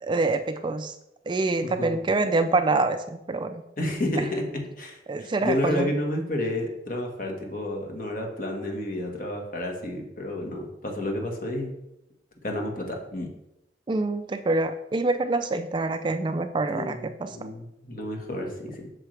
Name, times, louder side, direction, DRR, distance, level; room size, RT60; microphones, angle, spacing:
voice 1, 0.0-0.9 1.3-3.6 4.2-4.3 5.1-5.9 13.9-17.5, right 3 dB, 25° right, 9 dB, 0.3 m, -26 dB
voice 2, 1.6-2.0 3.8-11.7 12.4-13.3 16.7-18.9, left 1 dB, 50° left, 2 dB, 1.4 m, -31 dB
8.1 x 6.7 x 3.3 m, 0.87 s
head